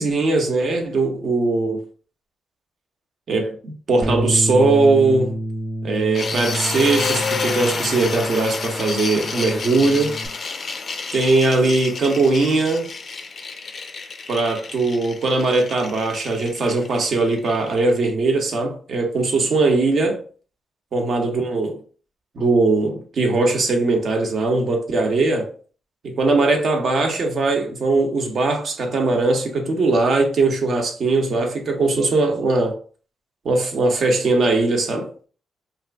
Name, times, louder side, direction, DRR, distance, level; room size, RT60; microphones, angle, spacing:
voice 1, 0.0-1.8 3.3-5.4 5.8-10.2 11.1-12.9 14.3-20.2 20.9-21.8 22.3-25.5 26.0-32.8 33.4-35.1, right 3 dB, 60° right, 0.8 m, -20 dB
Bass guitar, 4.0-10.3, equal, 15° right, 0.8 m, -29 dB
sound 1, 6.1-18.1, left 4 dB, 45° left, 0.4 m, -30 dB
2.7 x 2.5 x 3.4 m
cardioid pair, 85°, 0 cm